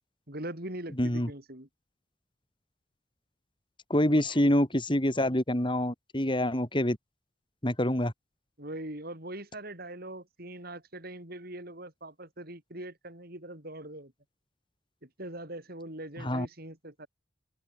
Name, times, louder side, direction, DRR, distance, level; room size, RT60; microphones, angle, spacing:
voice 1, 0.3-1.7 4.1-4.2 8.6-14.1 15.0-17.1, right 1 dB, 55° right, 7.7 m, -42 dB
voice 2, 1.0-1.3 3.9-7.0 7.6-8.1 16.2-16.5, left 1 dB, 25° left, 3.7 m, -26 dB
open air
head